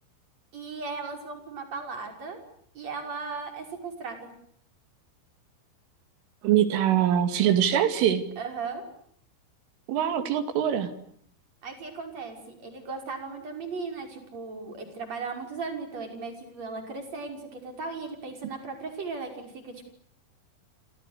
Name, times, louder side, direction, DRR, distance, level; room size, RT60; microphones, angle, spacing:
voice 1, 0.5-2.4 2.7-4.3 8.4-8.8 11.6-19.8, right 4 dB, 35° right, 4 dB, 6.6 m, -37 dB
voice 2, 6.4-8.2 9.9-10.9, right 10 dB, 85° right, 9 dB, 5.0 m, -23 dB
29.5 x 27.5 x 6.7 m, 0.67 s
omnidirectional pair, 5.5 m